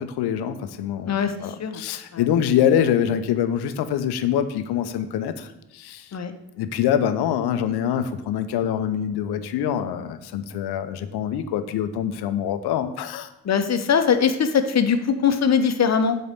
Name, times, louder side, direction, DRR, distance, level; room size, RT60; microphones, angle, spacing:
voice 1, 0.0-6.1 6.6-13.3, left 9 dB, 60° left, 10 dB, 0.8 m, -25 dB
voice 2, 1.1-1.8 2.1-2.3 6.1-6.3 13.4-16.2, left 6 dB, 35° left, 8 dB, 1.0 m, -21 dB
8.0 x 4.3 x 6.6 m, 0.88 s
hypercardioid pair, 45°, 44 cm